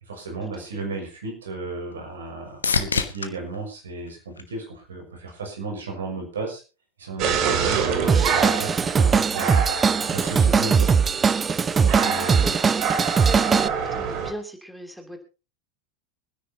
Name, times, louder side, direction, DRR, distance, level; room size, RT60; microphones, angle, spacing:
voice 1, 0.1-6.6 7.0-11.4 11.8-12.5, right 3 dB, 75° right, 2 dB, 5.9 m, -34 dB
Opening a soda can, 0.9-5.1 5.6-6.2 14.1-14.2, left 5 dB, 85° left, 1.2 m, -31 dB
sound 1, 7.2-14.3, right 7 dB, 50° right, 2.8 m, -27 dB
Drum kit / Drum, 8.1-13.7, right 5 dB, 20° right, 0.7 m, -20 dB
voice 2, 12.2-15.2, equal, ahead, 4 dB, 3.0 m, -39 dB
25.5 x 10.0 x 2.9 m, 0.31 s
figure-of-eight pair, 85°, 0 cm